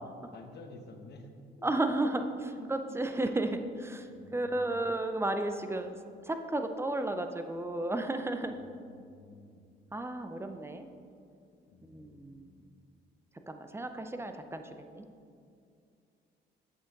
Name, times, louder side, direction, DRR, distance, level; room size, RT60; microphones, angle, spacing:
voice 1, 0.3-1.3 2.2-2.3 2.6-3.0 4.1-4.9 8.5-9.7 11.7-12.7, left 2 dB, 60° left, 5 dB, 1.0 m, -52 dB
voice 2, 1.6-6.0 6.2-8.5 9.9-10.9 11.8-12.5 13.5-15.1, right 2 dB, 10° right, 7 dB, 0.5 m, -33 dB
7.7 x 6.4 x 4.0 m, 2.4 s
cardioid pair, 90°, 20 cm